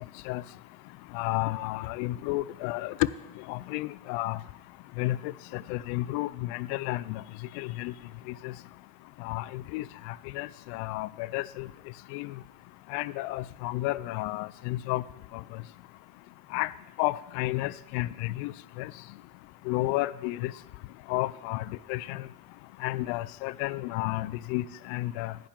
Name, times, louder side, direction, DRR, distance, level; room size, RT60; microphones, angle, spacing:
voice 1, 1.1-3.1 3.4-4.4 5.0-7.2 7.5-7.9 8.3-8.5 9.2-11.7 12.1-12.3 12.9-15.0 15.3-15.6 16.5-16.7 17.0-18.9 19.7-20.5 21.1-22.3 22.8-25.4, left 18 dB, 70° left, 21 dB, 0.5 m, -32 dB
11.5 x 9.0 x 3.6 m, 0.93 s
supercardioid pair, 90°, 47 cm